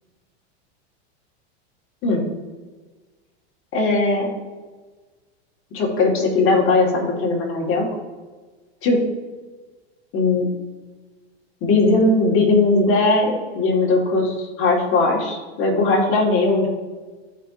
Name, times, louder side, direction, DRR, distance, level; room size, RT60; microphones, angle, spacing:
voice 1, 3.7-4.3 5.7-7.9 8.8-9.0 10.1-10.5 11.6-16.7, left 3 dB, 40° left, -2 dB, 2.1 m, -19 dB
12.5 x 4.6 x 2.8 m, 1.3 s
supercardioid pair, 120°, 33 cm